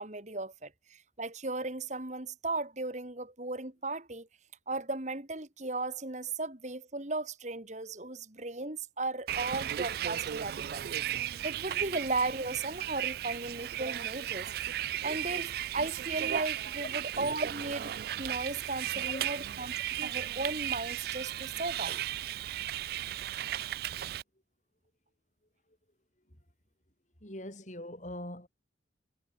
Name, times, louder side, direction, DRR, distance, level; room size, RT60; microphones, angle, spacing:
voice 1, 0.0-4.3 4.7-10.9 11.2-14.5 15.0-19.7 20.0-22.0, right 3 dB, 40° right, 2.4 m, -36 dB
Bus, 9.3-24.2, right 11 dB, 55° right, 0.3 m, -35 dB
voice 2, 27.2-28.5, left 1 dB, 40° left, 7.9 m, -42 dB
head